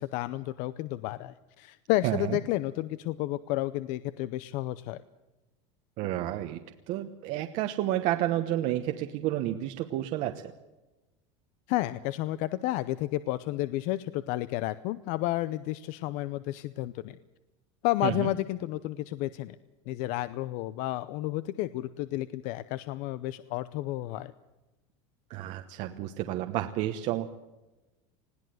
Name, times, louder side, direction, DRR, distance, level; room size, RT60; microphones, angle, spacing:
voice 1, 0.0-5.0 11.7-17.2 17.8-19.6 19.9-24.3, left 16 dB, 50° left, 15 dB, 0.7 m, -31 dB
voice 2, 2.0-2.4 6.0-6.6 6.9-10.4 18.0-18.3 25.3-27.3, right 13 dB, 50° right, 6 dB, 1.1 m, -30 dB
20.5 x 16.5 x 7.8 m, 1.1 s
supercardioid pair, 160°, 16 cm